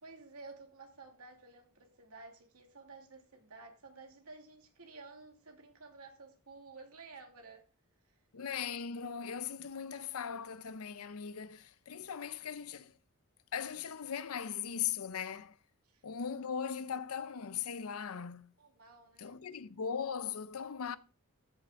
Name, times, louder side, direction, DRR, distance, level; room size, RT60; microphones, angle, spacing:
voice 1, 0.0-7.6 15.8-16.0 18.6-19.4, right 3 dB, 85° right, 2.4 m, -53 dB
voice 2, 8.3-12.9 13.5-15.6 16.0-18.5 19.2-21.0, left 7 dB, 80° left, 0.6 m, -39 dB
13.5 x 5.8 x 3.7 m
head